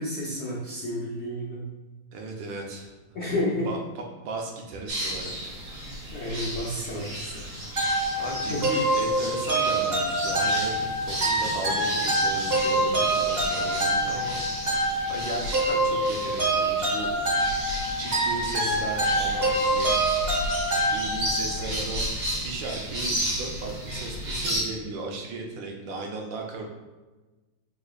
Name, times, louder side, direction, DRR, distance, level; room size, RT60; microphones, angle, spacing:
voice 1, 0.0-1.7 3.1-3.7 6.1-7.5 8.5-8.7 18.6-18.8, left 1 dB, 75° left, -4 dB, 0.6 m, -31 dB
voice 2, 2.1-2.9 3.6-3.8 4.2-5.6 8.2-14.8 15.1-17.2 18.0-19.9 20.9-26.7, right 3 dB, 75° right, 0 dB, 1.4 m, -36 dB
sound 1, 4.9-24.6, equal, 60° right, 2.1 m, -33 dB
sound 2, 7.8-21.6, right 1 dB, 40° right, 1.0 m, -26 dB
4.8 x 3.9 x 2.4 m, 1.2 s
omnidirectional pair, 2.1 m